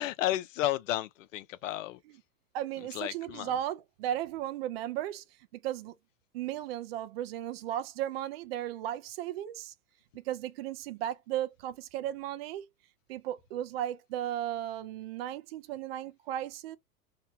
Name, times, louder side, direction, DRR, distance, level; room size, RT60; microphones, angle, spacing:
voice 1, 0.0-2.0 2.8-3.5, left 14 dB, 55° left, 0.6 m, -33 dB
voice 2, 2.5-5.2 5.6-5.9 6.3-9.7 10.3-12.6 13.1-16.8, right 12 dB, 40° right, 0.5 m, -35 dB
2.9 x 2.1 x 2.7 m
hypercardioid pair, 130°, 46 cm